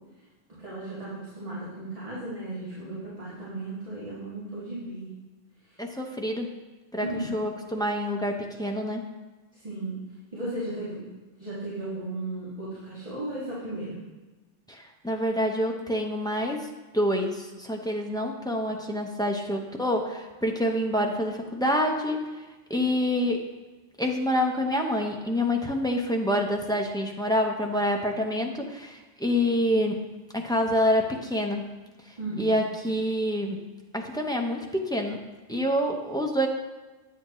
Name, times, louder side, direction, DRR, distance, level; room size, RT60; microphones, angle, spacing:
voice 1, 0.6-5.1 5.7-5.8 7.1-7.3 9.5-9.9 10.3-11.0 11.4-14.0 32.2-32.6, right 2 dB, 30° right, -10 dB, 2.2 m, -35 dB
voice 2, 5.8-6.5 6.9-7.1 7.3-9.0 14.7-16.7 16.9-22.3 22.7-23.5 24.0-30.0 30.3-31.7 32.4-33.6 33.9-35.2 35.5-36.5, equal, 5° left, 1 dB, 0.6 m, -27 dB
8.8 x 8.3 x 3.1 m, 1.2 s
omnidirectional pair, 1.3 m